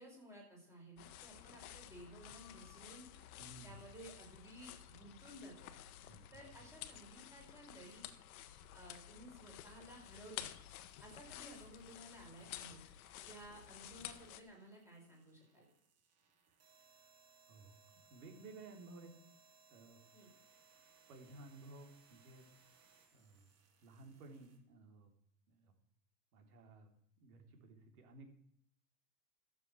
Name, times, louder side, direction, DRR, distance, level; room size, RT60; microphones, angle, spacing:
voice 1, 0.0-3.1 3.6-5.7 6.3-8.0 8.7-10.5 11.0-12.8 13.2-15.7 20.1-20.3, right 1 dB, 5° right, -2 dB, 4.8 m, -56 dB
sound 1, 1.0-14.4, left 12 dB, 60° left, 1.2 m, -52 dB
voice 2, 3.4-3.8 6.1-6.7 16.5-17.1 17.5-19.1 19.7-20.0 21.1-22.5 23.1-23.5 23.8-25.1 25.5-25.7 26.3-28.3, right 2 dB, 60° right, 4 dB, 3.5 m, -57 dB
sound 2, 10.0-24.6, right 5 dB, 30° right, 2.9 m, -69 dB
13.5 x 7.1 x 6.4 m, 0.72 s
supercardioid pair, 140°, 49 cm